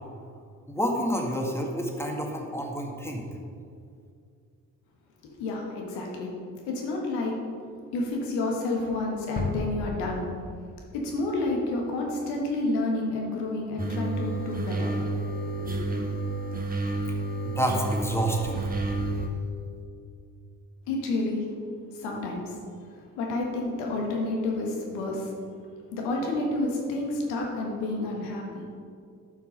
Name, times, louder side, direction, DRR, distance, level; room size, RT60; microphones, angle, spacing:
voice 1, 0.7-3.3 17.4-18.7, equal, 5° left, 0 dB, 2.0 m, -29 dB
voice 2, 5.2-6.3 6.7-7.3 7.9-10.2 10.9-15.0 15.5-15.8 20.9-21.5 21.9-22.6 23.2-25.3 25.9-28.6, left 2 dB, 85° left, -1 dB, 1.6 m, -30 dB
sound 1, 9.4-12.2, left 2 dB, 25° left, 1.5 m, -35 dB
sound 2, 13.8-19.3, right 2 dB, 20° right, 1.4 m, -30 dB
9.6 x 5.8 x 5.2 m, 2.4 s
hypercardioid pair, 45°, 38 cm